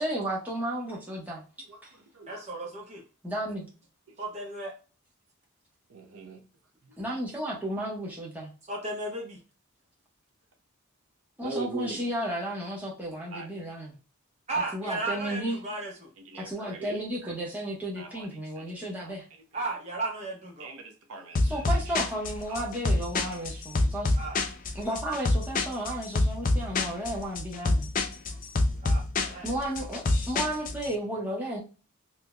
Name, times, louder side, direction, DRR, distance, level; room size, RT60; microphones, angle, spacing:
voice 1, 0.0-1.4 1.8-1.9 3.2-3.7 7.0-8.5 11.4-13.9 14.5-15.6 16.3-19.2 21.4-24.2 24.7-27.9 29.4-31.6, right 1 dB, 5° right, 1.0 m, -33 dB
voice 2, 1.7-2.4 4.1-4.2 5.9-6.4 11.4-12.1 13.3-13.5 15.0-15.1 16.3-17.3 18.0-18.3 18.6-18.7 19.0-19.1 20.6-21.6 22.5-22.6 28.3-28.4 28.7-28.9, right 4 dB, 80° right, 0.7 m, -41 dB
voice 3, 2.3-3.0 4.2-4.7 8.7-9.4 14.5-16.1 19.5-20.7 24.2-24.4 28.8-29.6, right 2 dB, 30° right, 1.1 m, -34 dB
sound 1, 21.4-30.9, left 2 dB, 35° left, 0.5 m, -27 dB
3.9 x 2.9 x 2.2 m
head